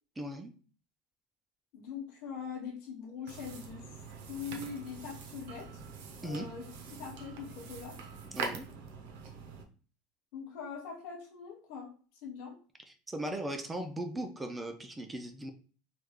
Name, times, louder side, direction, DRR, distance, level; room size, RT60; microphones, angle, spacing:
voice 1, 0.2-0.5 6.2-6.5 8.3-8.6 13.1-15.5, right 1 dB, 10° right, 6 dB, 0.3 m, -38 dB
voice 2, 1.7-4.0 4.3-5.8 6.2-6.6 6.9-8.0 10.3-11.9 12.2-12.6, left 6 dB, 45° left, -1 dB, 0.9 m, -42 dB
sound 1, 3.3-9.6, right 5 dB, 60° right, 0.7 m, -44 dB
3.1 x 2.3 x 3.5 m, 0.38 s
supercardioid pair, 180°, 0 cm